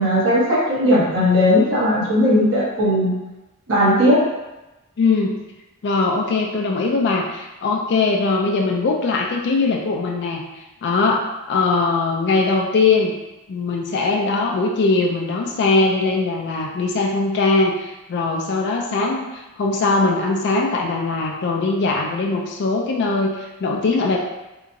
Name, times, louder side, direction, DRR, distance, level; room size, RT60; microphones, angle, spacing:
voice 1, 0.0-3.1 3.7-4.2, left 1 dB, 60° right, -8 dB, 1.2 m, -17 dB
voice 2, 5.0-5.3 5.8-10.4 10.8-13.1 13.5-24.2, left 3 dB, 50° left, 0 dB, 0.3 m, -20 dB
2.8 x 2.5 x 2.6 m, 1.0 s
head